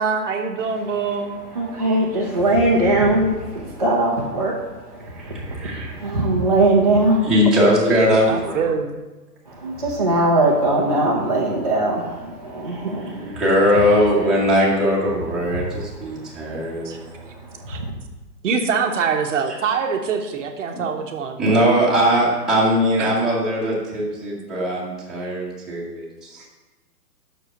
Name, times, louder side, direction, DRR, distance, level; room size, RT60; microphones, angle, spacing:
voice 1, 0.0-1.4 8.3-8.9 16.8-17.0 17.7-17.8 18.4-21.6 23.0-23.1, right 6 dB, 50° right, 4 dB, 0.8 m, -24 dB
voice 2, 1.2-7.3 9.5-13.4 15.6-15.7 16.2-17.9, right 2 dB, 25° right, -6 dB, 0.4 m, -21 dB
voice 3, 5.1-6.0 7.3-8.7 12.7-16.9 19.5-19.6 20.7-20.8 21.4-26.4, equal, ahead, -8 dB, 1.1 m, -20 dB
6.2 x 4.8 x 6.4 m, 1.1 s
hypercardioid pair, 150°, 49 cm